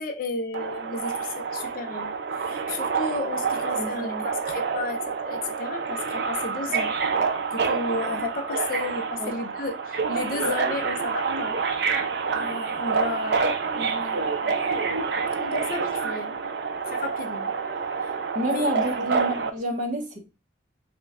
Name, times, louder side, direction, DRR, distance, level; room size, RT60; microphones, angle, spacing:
voice 1, 0.0-6.9 7.5-11.6 12.3-16.5 16.9-17.5 18.0-18.1 18.4-19.0, left 3 dB, 45° left, 0.4 m, -34 dB
Subway metro underground, 0.5-19.5, right 5 dB, 60° right, 0.4 m, -28 dB
voice 2, 3.8-4.3 9.2-9.3 18.3-20.2, right 1 dB, 40° right, 0.8 m, -29 dB
3.1 x 2.2 x 3.5 m
head